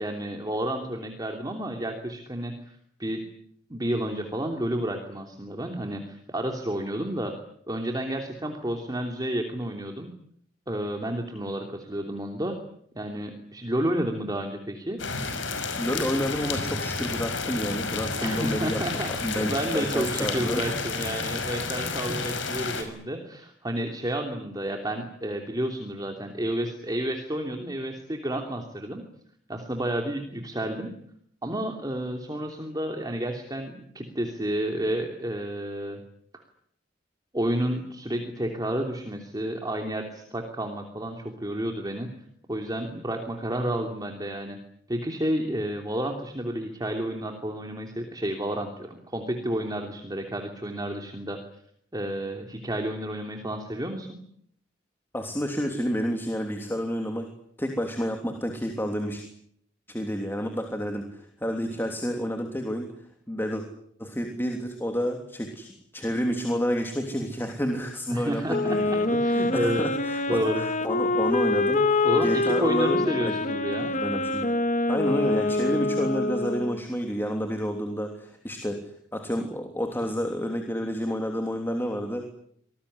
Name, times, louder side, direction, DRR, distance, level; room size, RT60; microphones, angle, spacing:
voice 1, 0.0-3.2 3.7-7.3 7.7-10.1 10.7-12.6 12.9-15.0 18.2-29.0 29.5-30.9 31.4-36.0 36.3-36.4 37.3-42.1 42.5-44.6 44.9-51.4 51.9-54.2 68.1-69.8 70.3-70.6 72.0-74.0, right 1 dB, 20° right, 3 dB, 3.0 m, -31 dB
sound 1, 15.0-22.8, left 4 dB, 80° left, 5.9 m, -31 dB
voice 2, 15.8-18.8 19.2-20.8 55.1-57.3 57.6-59.2 59.9-62.8 63.3-63.6 64.0-73.6 74.0-74.5 74.9-82.2, equal, 10° left, 3 dB, 3.1 m, -30 dB
Wind instrument woodwind instrument, 68.5-76.8, left 2 dB, 40° left, 1.8 m, -25 dB
26.0 x 19.5 x 10.0 m, 0.70 s
head